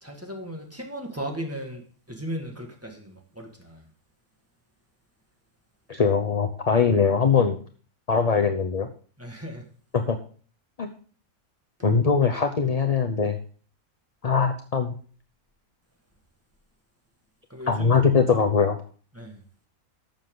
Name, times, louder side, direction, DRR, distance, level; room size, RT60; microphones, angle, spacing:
voice 1, 0.0-3.8 9.2-9.7 17.5-18.0 19.1-19.4, equal, 10° right, 2 dB, 1.8 m, -36 dB
voice 2, 5.9-7.6 8.1-8.9 9.9-10.2 10.8-10.9 11.8-13.4 14.2-14.9 17.7-18.8, left 5 dB, 35° left, 5 dB, 0.7 m, -21 dB
12.0 x 7.5 x 3.8 m, 0.43 s
omnidirectional pair, 1.5 m